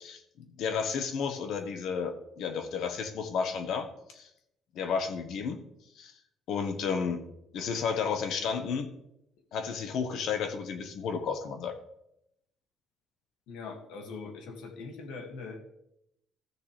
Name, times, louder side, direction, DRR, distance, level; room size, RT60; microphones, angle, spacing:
voice 1, 0.0-3.9 4.1-4.3 4.7-5.6 6.0-6.1 6.5-7.2 7.5-8.9 9.5-11.7, left 6 dB, 65° left, 7 dB, 1.3 m, -32 dB
voice 2, 13.5-15.6, left 4 dB, 85° left, 4 dB, 2.1 m, -42 dB
14.5 x 6.7 x 3.3 m, 0.79 s
cardioid pair, 155°, 0 cm